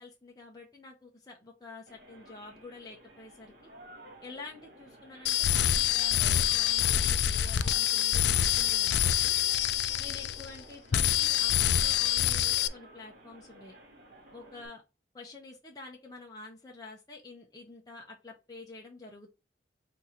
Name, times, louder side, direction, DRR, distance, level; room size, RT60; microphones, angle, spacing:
voice 1, 0.0-3.5 4.2-9.4 10.0-13.8 14.3-14.8 15.1-19.3, left 3 dB, 20° left, -1 dB, 0.8 m, -48 dB
sound 1, 1.9-14.7, right 1 dB, 45° right, 1.9 m, -52 dB
sound 2, 5.3-10.6 10.9-12.7, left 11 dB, 65° left, 0.3 m, -26 dB
4.6 x 2.7 x 4.0 m, 0.28 s
head